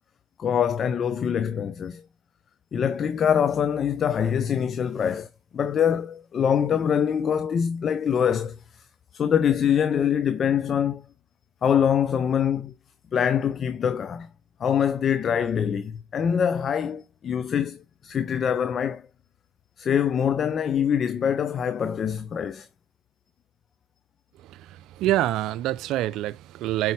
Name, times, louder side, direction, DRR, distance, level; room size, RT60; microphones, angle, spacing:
voice 1, 0.4-2.0 2.7-5.3 5.5-8.6 9.1-11.0 11.6-12.7 13.1-14.3 14.6-19.0 19.8-22.7, left 8 dB, 45° left, 0.6 m, -24 dB
voice 2, 25.0-26.9, right 14 dB, 65° right, 0.5 m, -25 dB
8.2 x 4.8 x 3.3 m
hypercardioid pair, 65°, 0 cm